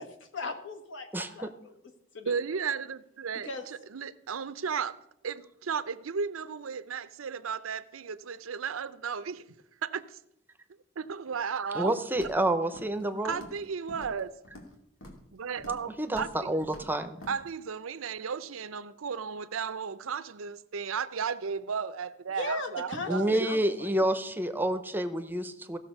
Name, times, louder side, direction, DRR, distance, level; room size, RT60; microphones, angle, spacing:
voice 1, 0.0-1.7 2.1-2.3 2.6-2.7 3.4-3.7 22.3-23.9, left 2 dB, 65° left, 1.5 m, -38 dB
voice 2, 2.3-3.5 3.9-9.4 9.8-10.2 11.0-12.0 13.2-14.4 15.3-16.3 17.3-23.5, right 6 dB, 90° right, 0.6 m, -34 dB
voice 3, 11.7-13.4 16.0-17.2 23.1-25.8, right 1 dB, 10° right, 0.7 m, -28 dB
Walk footsteps, 12.2-12.5 12.7-13.0 13.3-13.6 13.9-14.7 15.0-15.3 15.6-15.9 16.1-16.3 16.6-16.9 17.2-17.3, left 1 dB, 85° left, 2.4 m, -47 dB
15.5 x 6.4 x 5.3 m
head